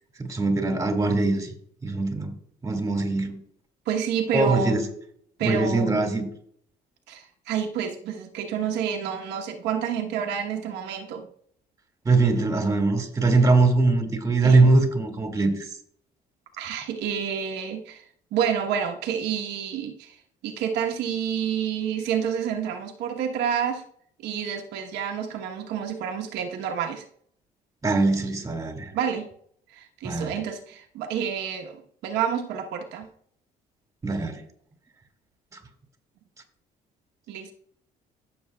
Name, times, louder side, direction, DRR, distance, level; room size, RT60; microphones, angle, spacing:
voice 1, 0.2-1.5 1.8-2.3 2.6-3.4 4.3-4.8 5.4-6.3 12.1-15.5 27.8-28.9 30.0-30.4 34.0-34.4, right 3 dB, 20° right, 2.1 m, -22 dB
voice 2, 3.9-4.8 5.4-6.0 7.1-11.3 14.4-14.7 16.6-18.0 18.3-20.2 20.4-23.8 24.2-27.0 28.9-29.3 29.7-33.1 37.3-37.5, right 8 dB, 90° right, 1.1 m, -29 dB
14.0 x 7.1 x 2.3 m
cardioid pair, 110°, 17 cm